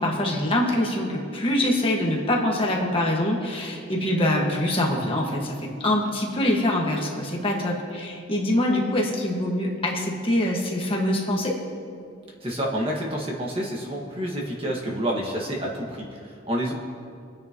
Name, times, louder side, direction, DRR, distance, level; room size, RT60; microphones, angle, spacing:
voice 1, 0.0-11.5, left 1 dB, 25° left, -2 dB, 1.6 m, -24 dB
voice 2, 12.4-16.7, equal, 30° right, -2 dB, 1.6 m, -29 dB
27.5 x 9.5 x 3.0 m, 2.3 s
head